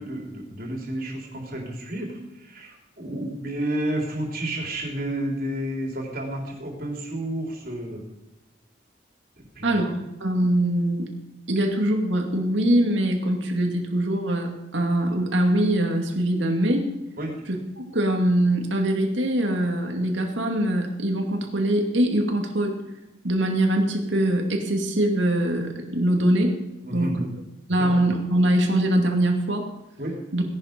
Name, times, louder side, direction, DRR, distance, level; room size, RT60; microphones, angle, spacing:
voice 1, 0.0-8.0 9.4-9.8 17.2-17.4 26.8-27.2 27.8-27.9 30.0-30.2, right 1 dB, 50° right, 0 dB, 3.7 m, -31 dB
voice 2, 9.6-11.1 11.5-16.9 17.8-22.8 23.2-26.5 26.9-27.1 27.7-29.7 30.3-30.4, right 1 dB, 80° right, 2 dB, 2.5 m, -23 dB
17.5 x 11.0 x 5.4 m, 0.96 s
head